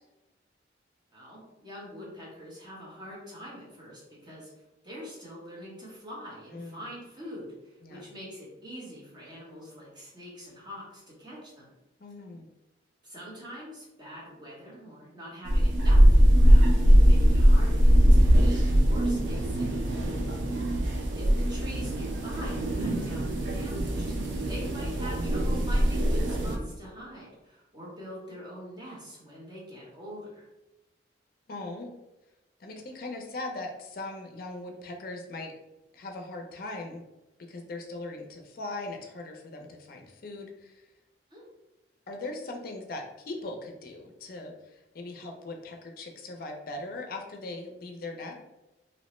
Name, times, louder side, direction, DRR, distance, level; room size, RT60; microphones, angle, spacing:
voice 1, 1.1-4.5 4.8-11.7 13.0-19.9 21.1-24.0 24.4-30.5 41.3-41.4, equal, 25° right, -6 dB, 0.9 m, -44 dB
voice 2, 12.0-12.5 20.0-20.3 31.5-31.9 32.6-35.5 35.9-37.0 37.4-40.8 42.1-48.3, left 2 dB, 50° left, 2 dB, 0.5 m, -40 dB
sound 1, 15.5-26.6, equal, 80° right, 0.5 m, -21 dB
2.9 x 2.0 x 3.0 m, 0.97 s
head